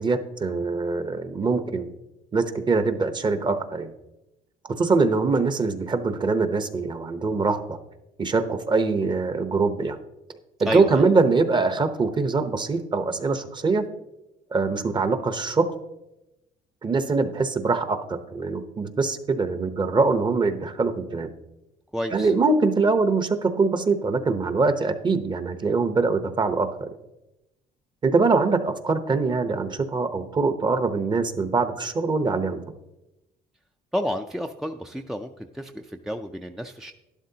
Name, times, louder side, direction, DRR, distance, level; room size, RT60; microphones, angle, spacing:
voice 1, 0.0-1.9 2.3-3.9 4.7-7.8 8.2-10.0 10.6-13.9 14.5-15.7 16.8-21.3 22.1-26.9 28.0-32.6, right 4 dB, 25° right, 9 dB, 0.8 m, -23 dB
voice 2, 21.9-22.3 33.9-36.9, equal, ahead, 5 dB, 0.4 m, -31 dB
12.0 x 11.5 x 2.8 m, 0.96 s
cardioid pair, 110°, 17 cm